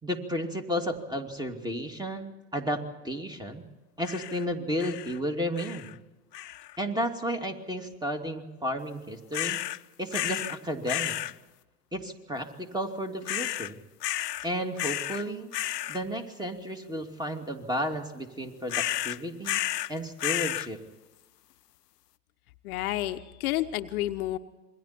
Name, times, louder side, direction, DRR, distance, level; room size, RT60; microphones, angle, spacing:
voice 1, 0.0-3.6 4.0-5.9 6.8-9.6 10.0-11.2 11.9-13.8 14.4-15.5 15.9-19.6 19.9-20.8, equal, 10° right, 4 dB, 2.7 m, -33 dB
sound 1, 4.0-4.4 4.8-5.2 5.6-5.9 6.3-6.8 9.3-9.8 10.1-10.6 10.9-11.3 13.3-13.7 14.0-14.5 14.8-15.2 15.5-16.0 18.7-19.9 20.2-20.7, left 13 dB, 85° left, 0.6 m, -32 dB
voice 2, 22.6-24.4, left 15 dB, 60° left, 8 dB, 1.1 m, -30 dB
27.5 x 22.0 x 4.4 m, 1.1 s
hypercardioid pair, 85°, 47 cm